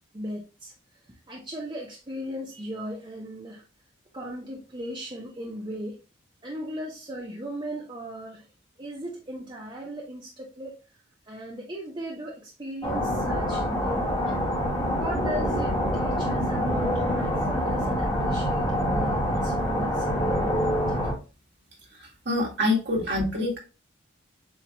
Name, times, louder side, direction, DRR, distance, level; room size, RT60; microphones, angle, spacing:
voice 1, 0.1-0.7 1.3-3.6 4.1-6.0 6.4-8.5 8.8-10.8 11.3-14.0 14.9-21.0 23.0-23.1, equal, 25° right, -2 dB, 0.7 m, -37 dB
sound 1, 12.8-21.1, equal, 25° left, 1.3 m, -26 dB
voice 2, 22.0-23.6, left 2 dB, 55° right, -3 dB, 1.9 m, -26 dB
7.1 x 2.4 x 3.0 m, 0.32 s
head